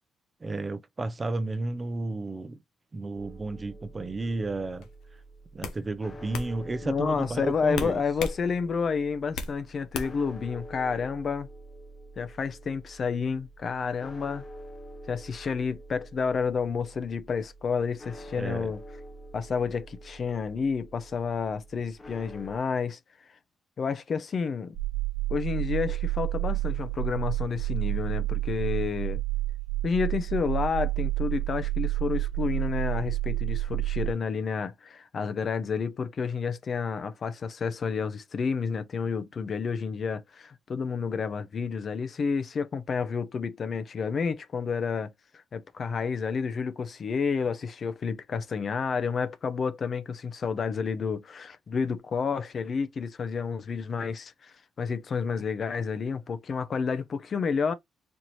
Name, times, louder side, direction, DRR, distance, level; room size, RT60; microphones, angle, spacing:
voice 1, 0.4-2.6 2.9-4.9 5.5-8.0 18.4-18.7, right 2 dB, 25° right, 0.5 m, -32 dB
sound 1, 3.2-22.6, right 1 dB, 30° left, 1.0 m, -47 dB
sound 2, 4.8-5.0 5.6-5.8 6.3-6.5 7.7-8.4 8.8-9.6 9.9-10.3, left 4 dB, 85° left, 0.9 m, -34 dB
voice 2, 6.8-11.5 12.2-14.4 15.1-18.8 19.3-23.0 23.8-24.7 25.3-29.2 29.8-57.7, left 5 dB, 50° left, 0.6 m, -30 dB
sound 3, 24.7-34.1, right 17 dB, 70° right, 1.1 m, -29 dB
4.4 x 2.7 x 3.1 m
cardioid pair, 90°, 0 cm